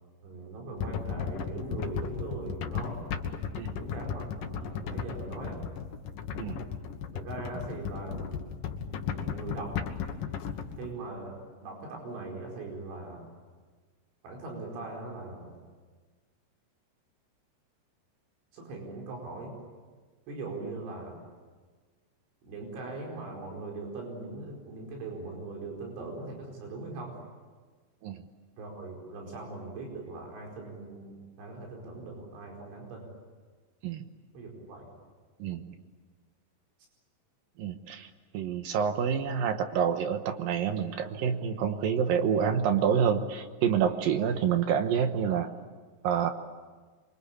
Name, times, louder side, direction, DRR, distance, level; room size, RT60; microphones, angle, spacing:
voice 1, 0.2-3.0 3.7-5.6 6.4-6.6 7.1-8.4 9.1-9.8 10.8-13.3 14.2-15.5 18.5-19.6 20.3-21.2 22.4-27.2 28.6-33.1 34.3-34.9, right 3 dB, 85° right, 0 dB, 7.2 m, -40 dB
sound 1, 0.8-10.9, left 7 dB, 60° left, 2.7 m, -35 dB
voice 2, 35.4-35.7 37.6-38.1 38.3-45.5 46.0-46.3, right 7 dB, 70° right, 8 dB, 2.3 m, -27 dB
27.0 x 25.0 x 8.6 m, 1.4 s
omnidirectional pair, 5.3 m